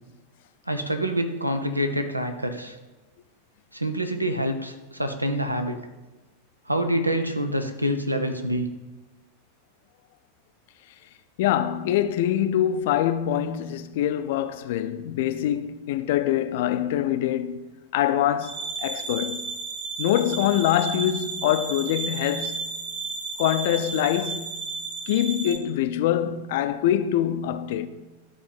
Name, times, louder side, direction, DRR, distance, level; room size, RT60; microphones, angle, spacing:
voice 1, 0.7-2.8 3.7-5.8 6.7-8.7, equal, 85° right, 0.7 m, -26 dB
voice 2, 11.4-17.6 17.9-19.5 20.0-22.7 23.4-24.6 25.1-27.9, left 11 dB, 50° left, 0.5 m, -24 dB
sound 1, 18.4-25.6, right 4 dB, 35° right, 1.0 m, -33 dB
12.0 x 4.2 x 5.5 m
figure-of-eight pair, 90°, 0 cm